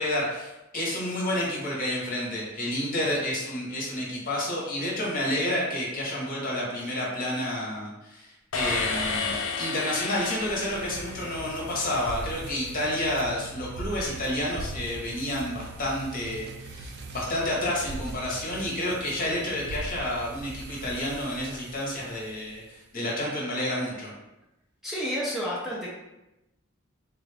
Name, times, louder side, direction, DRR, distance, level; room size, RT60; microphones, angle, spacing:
voice 1, 0.0-24.1, left 1 dB, 45° left, -4 dB, 1.0 m, -30 dB
sound 1, 8.5-11.7, left 4 dB, 70° left, 0.5 m, -31 dB
sound 2, 9.4-22.7, right 2 dB, 55° right, 0.4 m, -41 dB
voice 2, 24.8-25.9, equal, ahead, -7 dB, 0.6 m, -30 dB
3.6 x 2.4 x 3.3 m, 0.95 s
head